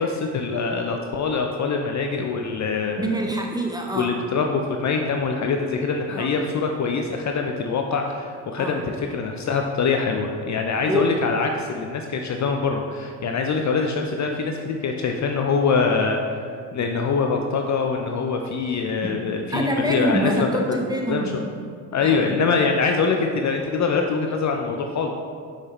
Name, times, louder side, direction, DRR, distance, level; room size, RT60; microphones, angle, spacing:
voice 1, 0.0-3.1 4.0-8.8 9.1-16.4 16.7-20.8 21.1-21.3 21.9-25.1, left 4 dB, 35° left, 3 dB, 0.5 m, -24 dB
voice 2, 2.9-4.1 6.1-6.3 8.6-8.8 10.9-11.1 19.0-19.1 19.5-21.6 22.0-22.4, right 1 dB, 10° right, 1 dB, 0.8 m, -25 dB
6.2 x 5.5 x 3.0 m, 2.2 s
hypercardioid pair, 55°, 49 cm